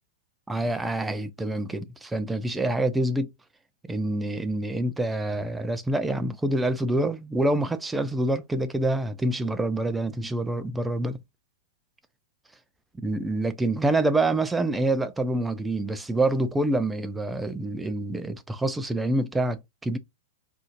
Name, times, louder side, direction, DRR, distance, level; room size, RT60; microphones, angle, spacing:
voice 1, 0.5-3.3 3.9-11.2 13.0-20.0, right 2 dB, 5° right, 0.3 m, -26 dB
4.3 x 2.5 x 2.5 m
supercardioid pair, 165°, 0 cm